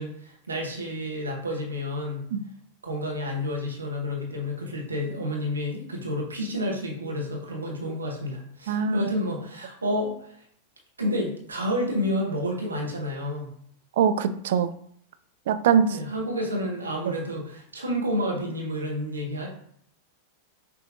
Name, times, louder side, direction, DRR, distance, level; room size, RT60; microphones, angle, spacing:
voice 1, 0.0-2.3 2.8-10.3 11.0-13.5 15.9-19.5, left 1 dB, 75° right, 0 dB, 1.0 m, -30 dB
voice 2, 8.7-9.1 14.0-14.7 15.5-15.9, right 7 dB, 55° right, 11 dB, 0.3 m, -22 dB
6.0 x 2.7 x 2.6 m, 0.65 s
figure-of-eight pair, 90°, 0 cm